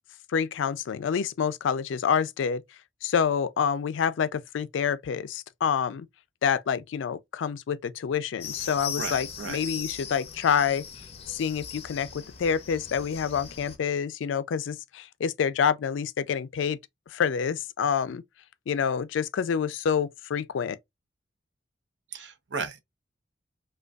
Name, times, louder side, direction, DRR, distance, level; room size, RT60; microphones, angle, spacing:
voice 1, 0.3-2.6 3.0-6.1 6.4-10.9 11.3-16.8 17.1-18.2 18.7-20.8, left 7 dB, 75° left, 0.4 m, -27 dB
sound 1, 8.4-13.8, left 7 dB, 30° left, 0.6 m, -39 dB
voice 2, 9.0-9.6 22.1-22.8, right 5 dB, 65° right, 0.7 m, -35 dB
5.0 x 2.3 x 2.3 m
head